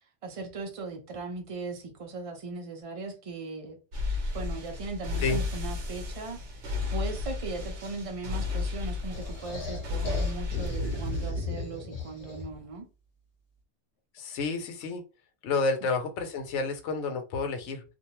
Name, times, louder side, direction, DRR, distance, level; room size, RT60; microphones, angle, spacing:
voice 1, 0.2-3.8 4.3-6.4 6.9-12.8, right 3 dB, 40° right, 0.5 m, -38 dB
sound 1, 3.9-11.3, left 4 dB, 70° right, 1.0 m, -33 dB
sound 2, 9.1-12.7, left 2 dB, 50° left, 1.0 m, -35 dB
voice 2, 14.1-15.0 15.4-17.8, left 4 dB, 75° left, 0.9 m, -30 dB
2.5 x 2.1 x 2.9 m
omnidirectional pair, 1.2 m